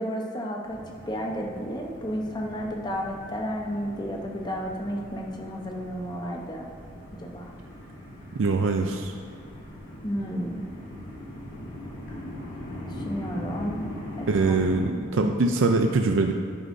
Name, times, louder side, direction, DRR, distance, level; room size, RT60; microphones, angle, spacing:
voice 1, 0.0-6.7 7.1-7.5 10.0-10.6 12.9-13.8 14.2-14.5 15.2-15.4, equal, 20° left, 0 dB, 0.9 m, -32 dB
sound 1, 0.7-14.8, equal, 40° left, 2.3 m, -40 dB
voice 2, 8.4-9.1 14.3-16.3, right 3 dB, 65° right, 4 dB, 0.4 m, -23 dB
10.5 x 9.6 x 2.7 m, 2.5 s
head